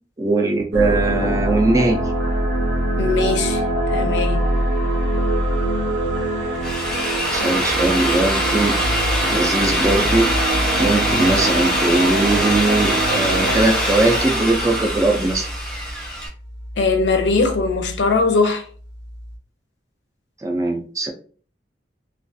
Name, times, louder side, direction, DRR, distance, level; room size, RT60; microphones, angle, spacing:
voice 1, 0.2-2.0 7.3-8.8 9.2-10.5 10.8-15.5 20.4-21.1, right 2 dB, 20° right, 0.3 m, -20 dB
sound 1, 0.7-13.6, right 1 dB, 60° right, 0.6 m, -23 dB
voice 2, 3.0-3.6 3.9-4.5 16.8-18.6, left 3 dB, 70° left, 0.5 m, -20 dB
Drill, 6.4-16.3, equal, 5° left, 0.8 m, -23 dB
sound 2, 7.7-19.4, equal, 85° right, 0.9 m, -33 dB
2.3 x 2.3 x 2.6 m
head